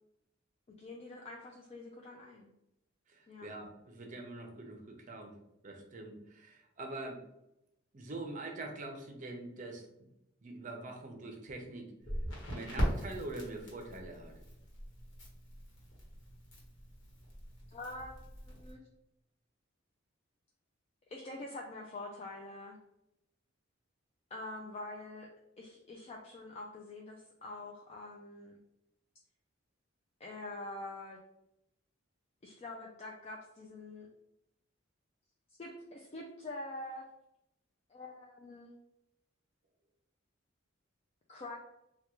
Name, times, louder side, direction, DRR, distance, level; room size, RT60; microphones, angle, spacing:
voice 1, 0.8-2.5 3.3-3.5 17.7-18.8 21.1-22.8 24.3-25.3 25.6-28.6 30.2-31.2 32.4-34.1 35.6-37.0 37.9-38.7 41.3-41.6, left 2 dB, 30° left, -1 dB, 0.3 m, -45 dB
voice 2, 3.1-5.3 5.6-7.2 7.9-9.9 10.4-11.9 12.5-14.3, right 2 dB, 40° right, 3 dB, 0.6 m, -44 dB
Crackle, 12.0-18.7, equal, 60° left, 1.1 m, -40 dB
3.5 x 2.3 x 3.0 m, 0.84 s
head